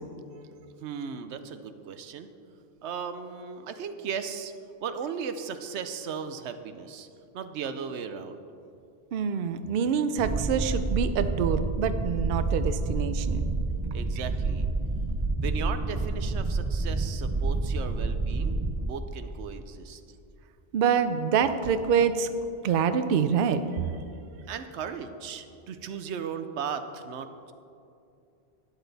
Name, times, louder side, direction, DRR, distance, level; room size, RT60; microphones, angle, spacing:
voice 1, 0.8-2.3 2.8-4.5 4.8-7.1 7.3-8.4 13.9-14.7 15.4-20.0 24.5-27.5, right 6 dB, 85° right, 9 dB, 1.0 m, -36 dB
voice 2, 9.1-13.4 20.7-22.3 22.6-23.6, right 7 dB, 60° right, 10 dB, 0.7 m, -26 dB
sound 1, 10.2-18.9, right 3 dB, 35° right, 0.4 m, -28 dB
12.5 x 9.8 x 4.0 m, 2.6 s
omnidirectional pair, 1.1 m